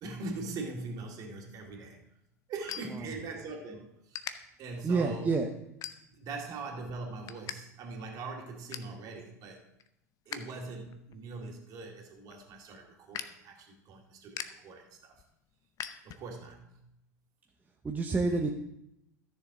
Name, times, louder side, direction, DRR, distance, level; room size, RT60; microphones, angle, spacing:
voice 1, 0.0-2.0 2.5-4.3 4.6-5.3 6.1-9.6 10.3-15.2 16.0-16.8, right 3 dB, 45° right, 1 dB, 2.3 m, -42 dB
sound 1, 1.5-3.6 4.1-4.3 4.9-5.1 5.8-6.4 6.8-7.6 7.9-8.0 8.3-9.0 9.4-10.5 10.8-16.5, left 9 dB, 40° left, 0.7 m, -44 dB
voice 2, 4.8-5.5 17.8-18.5, right 3 dB, 15° right, 2 dB, 0.9 m, -28 dB
13.5 x 6.8 x 3.8 m, 0.81 s
figure-of-eight pair, 80°, 9 cm